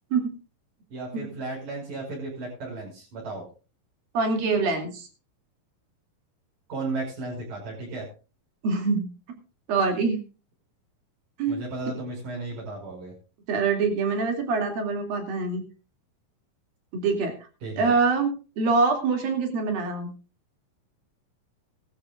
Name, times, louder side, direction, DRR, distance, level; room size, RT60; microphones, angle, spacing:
voice 1, 0.9-3.4 6.7-8.1 11.5-13.1 17.6-18.0, right 3 dB, 65° right, -5 dB, 7.1 m, -34 dB
voice 2, 4.1-5.1 8.6-9.1 9.7-10.2 11.4-11.6 13.5-15.6 16.9-17.3 17.8-18.3 18.6-20.1, right 4 dB, 85° right, 3 dB, 4.4 m, -24 dB
20.0 x 13.0 x 2.5 m, 0.35 s
omnidirectional pair, 4.0 m